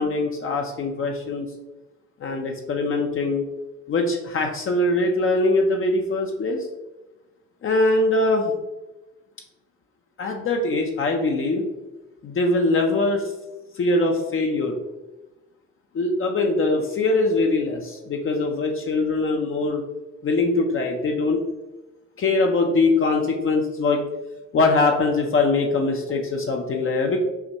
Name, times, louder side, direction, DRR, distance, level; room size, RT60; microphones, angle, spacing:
voice 1, 0.0-1.5 2.2-3.4 3.9-6.7 7.6-8.5 10.2-11.7 12.2-13.3 13.7-14.8 15.9-19.8 20.2-21.4 22.2-24.0 24.5-27.2, left 2 dB, 45° left, 1 dB, 0.6 m, -22 dB
5.6 x 2.2 x 2.8 m, 1.0 s
cardioid pair, 90°, 30 cm